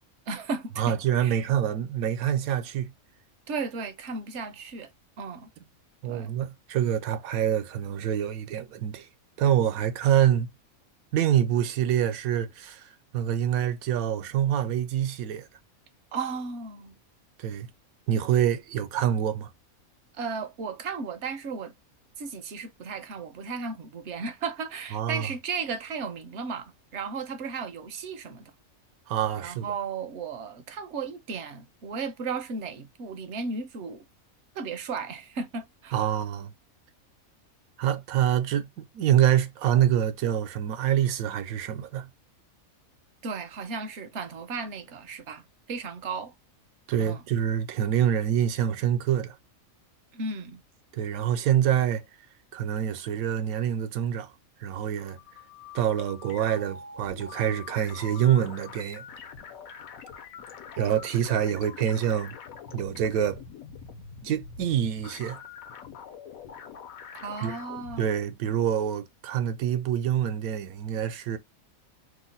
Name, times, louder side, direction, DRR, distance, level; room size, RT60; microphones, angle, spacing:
voice 1, 0.3-1.4 3.5-4.9 5.2-5.5 6.1-6.3 16.1-17.0 20.1-21.8 22.2-28.5 29.4-34.1 34.5-36.0 43.2-46.3 47.0-47.2 50.1-50.6 67.1-68.3, right 5 dB, 65° right, 0.8 m, -35 dB
voice 2, 0.8-2.9 6.0-9.1 9.4-10.5 11.1-12.9 13.1-15.5 17.4-17.7 18.1-19.5 24.9-25.3 29.1-29.7 35.9-36.5 37.8-42.1 46.9-49.4 50.9-52.0 52.5-54.3 54.6-55.2 55.7-59.0 60.8-62.4 62.7-63.4 64.2-65.4 67.4-67.5 68.0-71.4, right 10 dB, 85° right, 1.0 m, -26 dB
sound 1, 54.8-68.0, left 6 dB, 80° left, 1.1 m, -44 dB
2.8 x 2.1 x 3.9 m
omnidirectional pair, 1.5 m